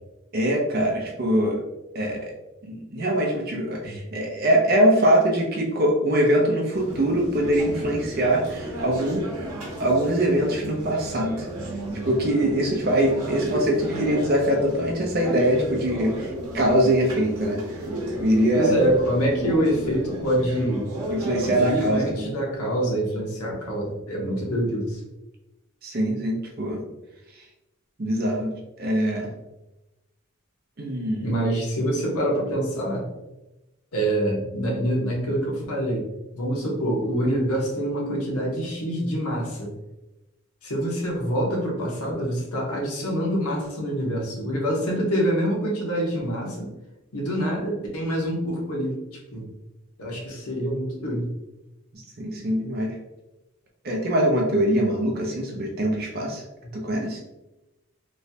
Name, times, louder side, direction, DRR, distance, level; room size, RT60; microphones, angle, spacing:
voice 1, 0.3-1.6 1.9-2.3 2.6-9.2 9.8-11.5 12.0-17.6 18.2-18.7 21.1-22.3 25.8-26.8 27.3-27.4 28.0-28.5 28.8-29.3 30.8-31.3 51.9-53.0 53.8-56.4 56.7-57.2, right 1 dB, 45° right, 0 dB, 0.5 m, -23 dB
sound 1, 6.7-22.1, equal, 90° right, 0.8 m, -33 dB
voice 2, 18.5-20.9 21.4-25.0 31.2-33.1 33.9-36.0 36.3-39.7 40.6-46.7 47.1-49.0 49.3-49.5 50.0-51.3, right 1 dB, 80° left, -2 dB, 0.9 m, -25 dB
3.0 x 2.2 x 2.7 m, 0.98 s
head